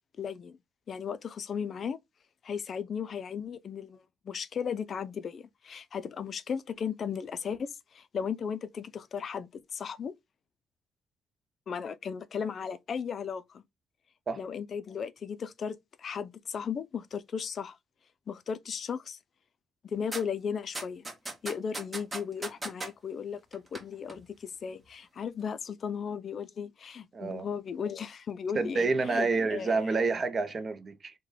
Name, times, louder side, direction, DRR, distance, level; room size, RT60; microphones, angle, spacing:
voice 1, 0.2-0.6 0.9-2.0 2.4-10.1 11.7-13.6 14.4-17.8 18.3-19.2 19.8-21.1 21.4-30.0, left 7 dB, 50° left, 0.3 m, -36 dB
sound 1, 20.1-20.2 20.7-22.9 23.5-23.8 24.1-24.2, right 2 dB, 20° right, 1.0 m, -37 dB
voice 2, 27.1-27.5 28.5-31.1, right 4 dB, 40° right, 0.6 m, -28 dB
3.2 x 2.1 x 3.6 m
cardioid pair, 90°, 0 cm